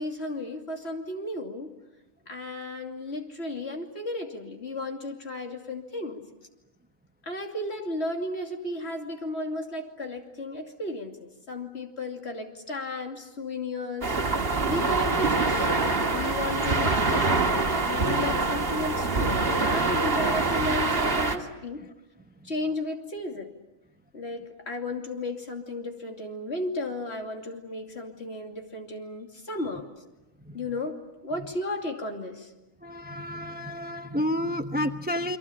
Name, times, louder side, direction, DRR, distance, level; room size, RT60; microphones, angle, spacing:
voice 1, 0.0-1.7 2.3-6.3 7.2-14.2 14.6-15.7 16.1-21.8 22.4-23.5 24.1-29.8 30.5-32.5, left 1 dB, 50° left, 3 dB, 3.1 m, -34 dB
sound 1, 14.0-21.4, right 3 dB, 45° right, 2.2 m, -25 dB
voice 2, 32.8-35.4, left 1 dB, 10° right, 8 dB, 0.7 m, -30 dB
29.0 x 24.0 x 8.7 m, 1.0 s
omnidirectional pair, 1.4 m